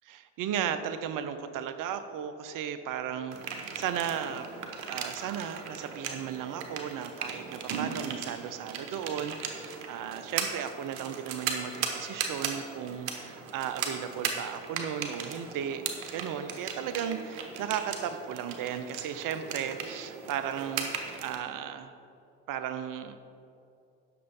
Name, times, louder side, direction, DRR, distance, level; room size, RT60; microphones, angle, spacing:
voice 1, 0.0-4.5 4.9-15.8 16.1-21.9 22.5-23.2, right 9 dB, 65° right, 10 dB, 0.8 m, -35 dB
sound 1, 3.3-21.4, right 6 dB, 80° right, 1.2 m, -37 dB
9.4 x 6.5 x 5.4 m, 2.5 s
hypercardioid pair, 60°, 35 cm